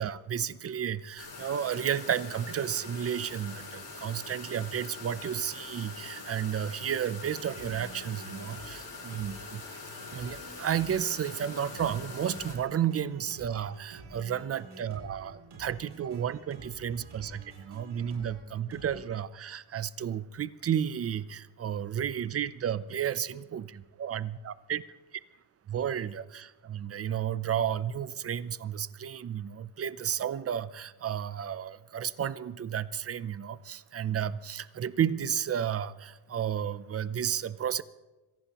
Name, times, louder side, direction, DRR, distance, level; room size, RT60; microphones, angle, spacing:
voice 1, 0.0-9.6 10.1-24.8 25.7-37.8, right 9 dB, 30° right, 16 dB, 0.5 m, -32 dB
sound 1, 1.2-12.6, left 3 dB, 65° left, 6.7 m, -44 dB
sound 2, 7.1-19.0, right 2 dB, 60° right, 7.3 m, -49 dB
25.5 x 18.0 x 3.0 m, 1.1 s
cardioid pair, 145°, 46 cm